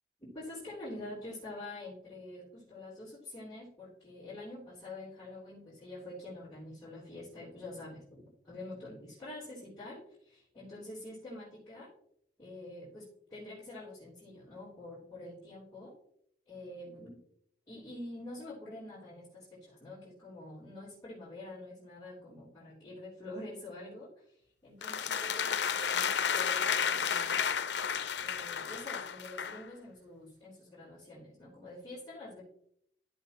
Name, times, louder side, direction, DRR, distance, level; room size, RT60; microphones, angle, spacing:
voice 1, 0.3-11.9 12.4-15.9 16.5-17.2 17.7-27.5 28.2-32.4, left 1 dB, 20° left, -11 dB, 3.4 m, -46 dB
sound 1, 24.8-29.6, left 7 dB, 75° left, 0.7 m, -32 dB
14.0 x 5.8 x 2.9 m, 0.70 s
head